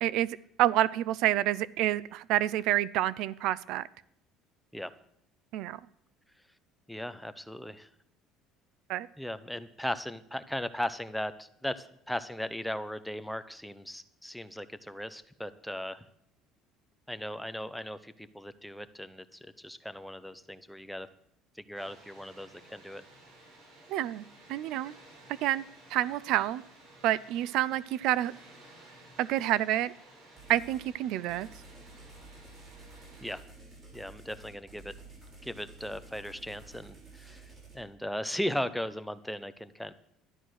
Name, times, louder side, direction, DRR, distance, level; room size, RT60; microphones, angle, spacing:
voice 1, 0.6-3.8 5.5-5.8 8.9-9.1 23.9-24.2 24.5-24.9 25.4-25.6 25.9-26.6 27.0-28.3 29.2-29.9 30.5-31.5, right 14 dB, 70° right, 0.4 m, -28 dB
voice 2, 6.9-7.9 9.2-16.1 17.1-21.1 21.6-23.0 33.2-33.4 33.9-34.9 35.4-39.9, equal, ahead, 0.7 m, -37 dB
Water, 21.7-33.4, right 2 dB, 85° right, 7.6 m, -55 dB
sound 1, 30.4-30.9 31.3-37.8, right 2 dB, 30° right, 6.6 m, -51 dB
12.5 x 11.0 x 6.4 m
cardioid pair, 145°, 0 cm